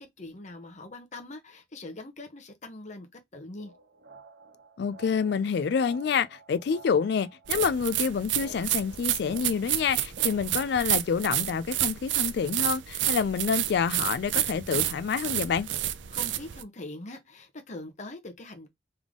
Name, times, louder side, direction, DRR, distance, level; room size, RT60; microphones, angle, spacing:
voice 1, 0.0-3.7 16.1-18.7, left 2 dB, 40° left, 0.9 m, -42 dB
sound 1, 3.6-10.6, right 2 dB, 60° right, 0.9 m, -50 dB
voice 2, 4.8-15.7, left 6 dB, 65° left, 0.3 m, -27 dB
sound 2, 7.5-16.6, right 13 dB, 85° right, 0.5 m, -30 dB
3.6 x 3.3 x 3.6 m
head